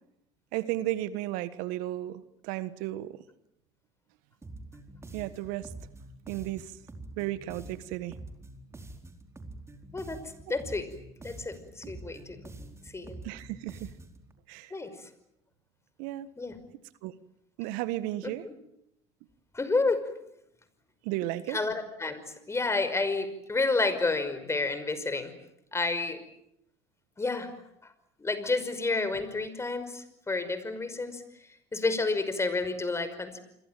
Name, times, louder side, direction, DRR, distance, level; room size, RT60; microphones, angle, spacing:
voice 1, 0.5-3.1 5.1-5.7 6.3-6.7 7.2-8.1 13.2-13.9 14.5-14.7 16.0-16.3 17.0-17.1 17.6-18.4 21.0-21.6, right 15 dB, 70° right, 14 dB, 1.5 m, -34 dB
sound 1, 4.4-14.3, right 2 dB, 20° right, 4.4 m, -46 dB
voice 2, 10.5-10.9 11.2-12.4 12.9-13.2 14.7-14.9 16.4-16.6 18.2-18.5 19.5-20.0 21.5-25.3 25.7-26.2 27.2-27.5 28.2-31.2 31.7-33.4, left 3 dB, 20° left, 12 dB, 5.6 m, -30 dB
27.5 x 23.0 x 9.2 m, 0.79 s
hypercardioid pair, 80°, 14 cm